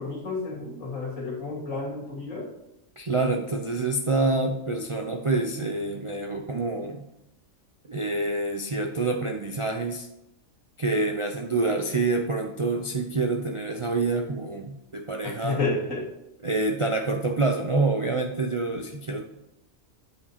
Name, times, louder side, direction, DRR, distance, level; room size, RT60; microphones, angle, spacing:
voice 1, 0.0-2.5 15.2-16.1, left 3 dB, 80° left, -3 dB, 2.9 m, -31 dB
voice 2, 3.0-7.1 7.9-10.1 10.8-15.6 16.4-19.2, right 3 dB, 45° right, 3 dB, 0.4 m, -27 dB
8.2 x 5.1 x 4.2 m, 0.89 s
omnidirectional pair, 1.4 m